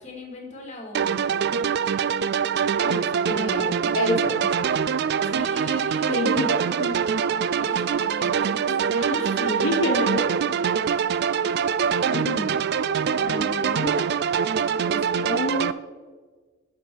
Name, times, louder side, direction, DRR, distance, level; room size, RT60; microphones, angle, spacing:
voice 1, 0.0-1.5 5.3-7.0 7.5-9.7 11.4-11.7 12.0-12.6 13.1-13.4, left 2 dB, 35° left, 0 dB, 2.4 m, -40 dB
sound 1, 0.9-15.7, right 7 dB, 55° right, 0.3 m, -24 dB
voice 2, 2.8-4.5 6.1-7.0 8.7-10.6 12.1-12.6 13.2-14.1 14.8-15.7, left 1 dB, 85° left, 3 dB, 1.2 m, -29 dB
12.0 x 6.7 x 4.6 m, 1.4 s
head